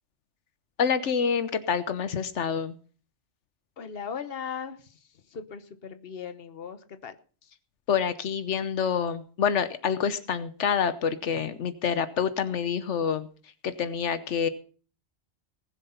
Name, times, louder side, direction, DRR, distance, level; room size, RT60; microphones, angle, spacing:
voice 1, 0.8-2.8 7.9-13.3 13.6-14.5, left 7 dB, 85° left, 12 dB, 1.2 m, -27 dB
voice 2, 3.8-5.0 5.3-7.1, left 7 dB, 55° left, 10 dB, 1.3 m, -38 dB
19.5 x 7.4 x 5.8 m, 0.40 s
omnidirectional pair, 1.2 m